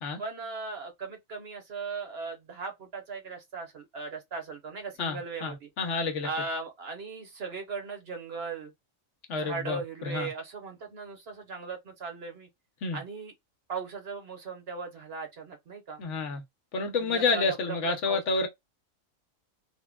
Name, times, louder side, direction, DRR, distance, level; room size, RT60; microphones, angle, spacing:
voice 1, 0.2-5.7 6.2-8.7 9.3-12.5 12.9-13.3 13.7-16.0 17.0-18.2, right 4 dB, 55° right, 1.0 m, -38 dB
voice 2, 5.0-6.3 9.3-10.3 12.8-13.0 16.0-16.4 16.7-18.5, left 4 dB, 65° left, 1.1 m, -29 dB
3.5 x 2.2 x 2.2 m
omnidirectional pair, 1.4 m